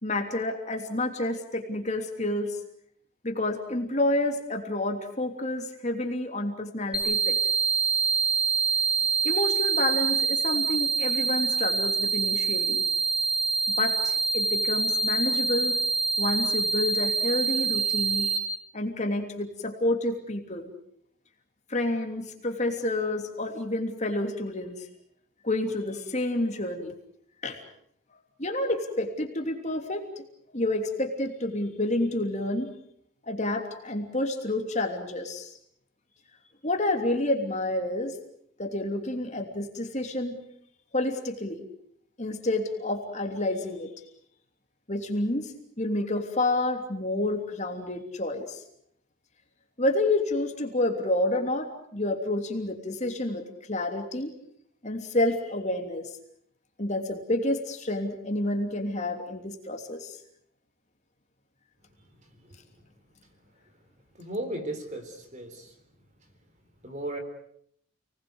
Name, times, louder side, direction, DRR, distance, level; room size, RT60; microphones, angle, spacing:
voice 1, 0.0-2.6 3.2-7.4 9.2-12.8 13.8-15.8 16.2-18.3 18.7-20.7 21.7-24.9 25.4-26.9 27.4-27.6 28.4-30.2 30.5-32.8 33.2-35.5 36.6-38.2 38.6-40.4 40.9-41.6 42.2-43.9 44.9-48.6 49.8-53.4 53.7-54.3 54.8-56.1 56.8-60.2, left 1 dB, 35° left, 4 dB, 3.1 m, -29 dB
sound 1, 6.9-18.4, right 4 dB, 5° right, 4.9 m, -25 dB
voice 2, 64.2-65.0 65.3-65.5 66.8-67.2, right 1 dB, 35° right, 6 dB, 4.0 m, -34 dB
29.5 x 20.0 x 8.1 m, 0.69 s
head